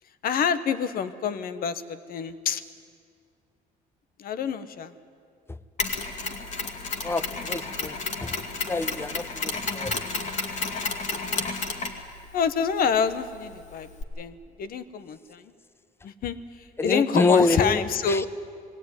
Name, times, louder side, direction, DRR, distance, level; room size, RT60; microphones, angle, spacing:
voice 1, 0.2-2.6 4.2-4.9 12.3-13.9 14.2-15.5 16.0-16.4 16.8-18.3, left 6 dB, 60° left, 13 dB, 1.1 m, -27 dB
Mechanisms, 5.8-14.0, left 4 dB, 45° left, 2.2 m, -32 dB
voice 2, 7.0-8.4 8.6-10.0 16.8-17.8 18.1-18.2, left 3 dB, 15° left, 15 dB, 0.7 m, -26 dB
20.5 x 17.0 x 9.6 m, 2.2 s
cardioid pair, 110°, 17 cm